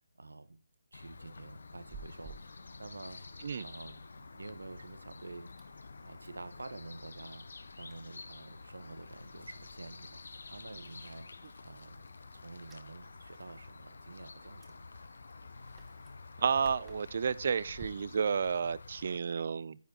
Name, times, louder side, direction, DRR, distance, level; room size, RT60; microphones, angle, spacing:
voice 1, 0.2-0.6 0.9-3.2 3.6-5.5 6.0-7.4 7.8-11.3 11.6-12.1 12.3-14.9, right 2 dB, 80° right, 1.4 m, -48 dB
sound 1, 0.9-19.2, left 4 dB, 70° left, 0.9 m, -50 dB
Chewing mastication, 1.8-17.9, right 4 dB, 15° right, 1.4 m, -58 dB
voice 2, 16.4-19.8, right 6 dB, 50° right, 0.6 m, -31 dB
10.0 x 8.9 x 4.4 m
figure-of-eight pair, 155°, 0 cm